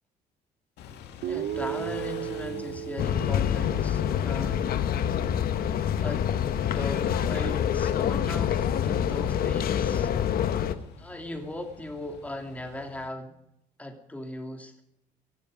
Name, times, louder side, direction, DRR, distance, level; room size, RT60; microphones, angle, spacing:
Car / Idling / Accelerating revving vroom, 0.8-13.1, left 7 dB, 80° left, 2.3 m, -47 dB
Guitar, 1.2-5.2, right 12 dB, 65° right, 0.9 m, -36 dB
voice 1, 1.3-5.3 6.0-6.3 6.7-10.1 10.8-13.4 13.8-14.8, left 1 dB, 10° left, 4 dB, 3.0 m, -38 dB
sound 1, 3.0-10.8, left 9 dB, 60° left, 1.4 m, -26 dB
17.5 x 15.5 x 5.1 m, 0.78 s
cardioid pair, 110°, 17 cm